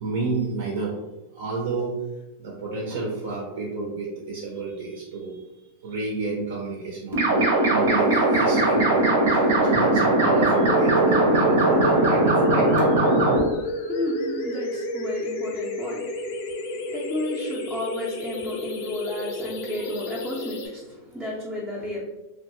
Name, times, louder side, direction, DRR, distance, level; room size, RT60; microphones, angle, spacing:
voice 1, 0.0-1.0 1.3-2.0 2.4-5.4 5.8-12.9, right 3 dB, 65° right, -2 dB, 0.6 m, -30 dB
sound 1, 7.1-13.4, right 2 dB, 85° right, 0.9 m, -20 dB
sound 2, 10.7-20.7, left 1 dB, 50° left, 0.5 m, -30 dB
voice 2, 13.5-22.0, left 1 dB, 5° right, -7 dB, 0.5 m, -33 dB
2.9 x 2.2 x 2.9 m, 0.98 s
supercardioid pair, 170°, 0 cm